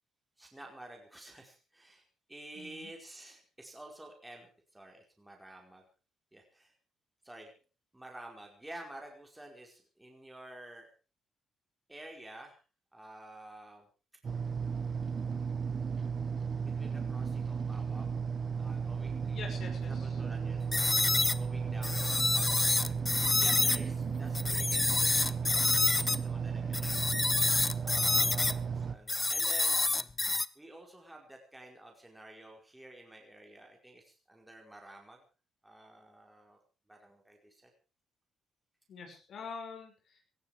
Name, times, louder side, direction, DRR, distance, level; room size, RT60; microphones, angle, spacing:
voice 1, 0.4-5.9 6.3-6.7 7.2-7.5 7.9-10.9 11.9-12.6 12.9-13.9 16.6-18.1 18.6-27.1 27.8-29.8 30.5-35.2 35.6-36.6 36.9-37.7, right 1 dB, 10° right, 1 dB, 4.9 m, -51 dB
voice 2, 2.6-2.9 19.3-20.1 28.2-28.5 38.9-40.2, left 5 dB, 65° left, 3 dB, 5.9 m, -45 dB
sound 1, 14.2-29.0, right 6 dB, 45° right, 1.6 m, -34 dB
sound 2, 20.7-23.8 24.3-26.2 26.7-28.5 29.1-30.5, left 3 dB, 20° left, 0.8 m, -28 dB
18.5 x 14.5 x 4.9 m, 0.35 s
cardioid pair, 90°, 0 cm